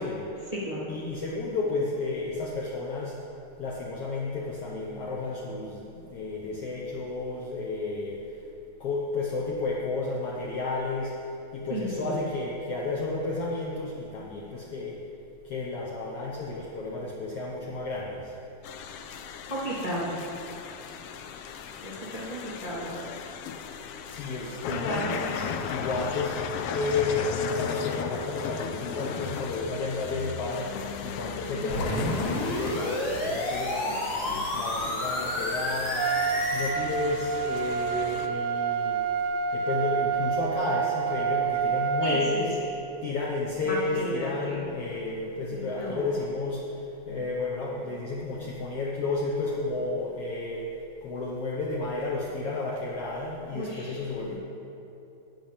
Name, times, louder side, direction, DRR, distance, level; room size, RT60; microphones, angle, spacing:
voice 1, 0.0-0.5 0.9-3.2 3.6-8.2 8.8-11.1 11.5-15.0 15.4-18.4 24.1-26.4 26.7-30.8 31.0-36.1 36.5-39.0 39.5-42.6 43.0-50.7 51.0-54.4, left 3 dB, 60° left, -3 dB, 1.8 m, -32 dB
voice 2, 0.5-0.9 11.7-12.2 19.5-20.2 21.8-23.0 24.7-25.2 31.6-32.3 42.0-42.5 43.6-44.6 45.5-46.2 53.5-54.4, equal, 15° left, -6 dB, 2.5 m, -34 dB
sound 1, 18.6-38.3, left 7 dB, 80° left, 1.3 m, -36 dB
sound 2, 31.7-36.7, left 1 dB, 45° left, 2.2 m, -30 dB
Trumpet, 36.0-42.5, right 6 dB, 90° right, 2.0 m, -28 dB
12.0 x 6.2 x 8.6 m, 2.8 s
omnidirectional pair, 3.3 m